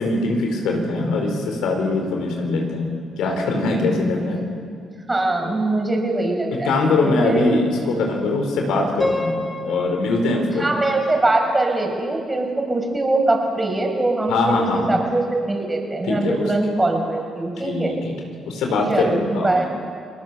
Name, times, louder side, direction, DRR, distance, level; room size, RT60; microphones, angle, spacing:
voice 1, 0.0-4.4 5.4-5.6 6.5-10.7 14.3-15.0 16.0-16.4 17.6-18.1 18.4-19.7, left 2 dB, 85° left, 2 dB, 4.7 m, -22 dB
voice 2, 4.0-4.4 5.1-6.7 7.0-7.4 10.5-17.9 18.9-19.7, right 2 dB, 20° right, 2 dB, 5.6 m, -22 dB
Piano, 9.0-12.0, left 2 dB, 20° left, 5.0 m, -29 dB
29.5 x 20.0 x 7.1 m, 2.2 s
cardioid pair, 90°, 0 cm